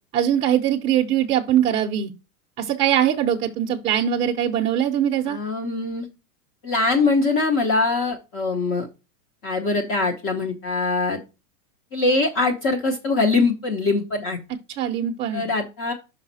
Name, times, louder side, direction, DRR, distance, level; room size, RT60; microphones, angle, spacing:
voice 1, 0.1-2.1 2.6-5.4 14.8-15.5, right 10 dB, 15° right, -1 dB, 0.7 m, -22 dB
voice 2, 5.3-6.1 6.6-8.9 9.4-11.2 11.9-14.4 15.3-15.9, left 3 dB, 30° left, 4 dB, 1.0 m, -22 dB
5.7 x 5.3 x 4.0 m, 0.28 s
supercardioid pair, 150°, 45 cm